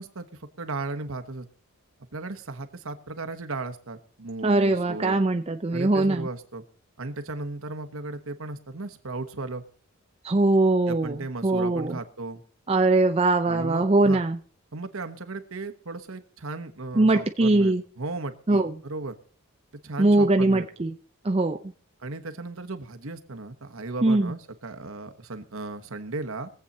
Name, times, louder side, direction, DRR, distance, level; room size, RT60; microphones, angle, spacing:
voice 1, 0.0-1.5 2.1-5.2 5.7-6.6 7.0-9.6 10.9-12.4 13.5-14.2 14.7-19.2 19.8-20.7 22.0-26.5, right 3 dB, 65° right, 7 dB, 1.2 m, -36 dB
voice 2, 4.4-6.3 10.2-12.0 12.7-14.4 16.9-17.8 18.5-18.7 20.0-20.9 21.2-21.6 24.0-24.3, right 2 dB, 25° right, 5 dB, 0.5 m, -21 dB
22.0 x 8.0 x 4.2 m, 0.43 s
head